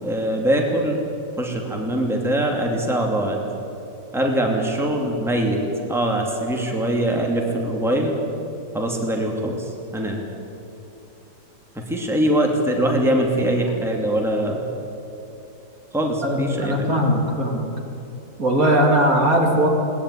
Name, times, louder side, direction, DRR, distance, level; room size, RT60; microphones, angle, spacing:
voice 1, 0.0-1.0 1.4-3.4 4.1-5.6 5.9-8.1 8.7-9.6 9.9-10.2 11.9-14.6 15.9-16.9, right 1 dB, ahead, 0 dB, 2.7 m, -22 dB
voice 2, 16.2-17.7 18.4-19.7, right 1 dB, 55° right, 0 dB, 3.5 m, -19 dB
21.5 x 19.0 x 10.0 m, 2.9 s
omnidirectional pair, 1.9 m